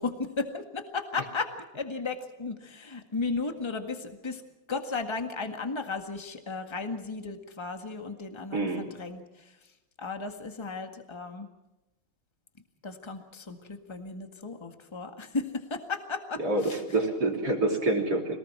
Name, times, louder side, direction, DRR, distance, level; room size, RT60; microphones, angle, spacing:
voice 1, 0.0-4.4 4.7-9.7 10.0-11.5 12.8-17.0, left 4 dB, 15° left, 5 dB, 1.6 m, -35 dB
voice 2, 8.5-8.9 16.4-16.6 16.9-18.4, right 2 dB, 45° right, 0 dB, 3.9 m, -27 dB
26.5 x 19.0 x 6.1 m, 1.0 s
omnidirectional pair, 2.4 m